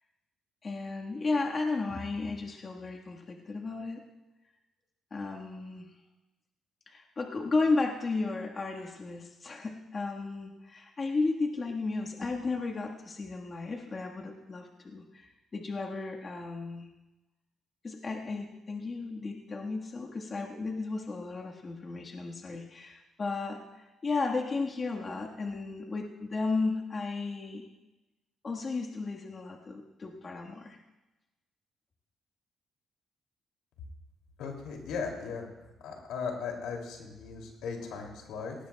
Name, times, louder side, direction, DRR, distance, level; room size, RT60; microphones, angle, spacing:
voice 1, 0.6-4.0 5.1-5.9 6.9-16.9 17.8-27.6 28.4-30.8, left 3 dB, 35° left, 0 dB, 1.5 m, -34 dB
voice 2, 34.4-35.5 35.8-38.6, left 5 dB, 90° left, 1 dB, 2.7 m, -37 dB
18.0 x 18.0 x 2.3 m, 1.0 s
cardioid pair, 90°, 0 cm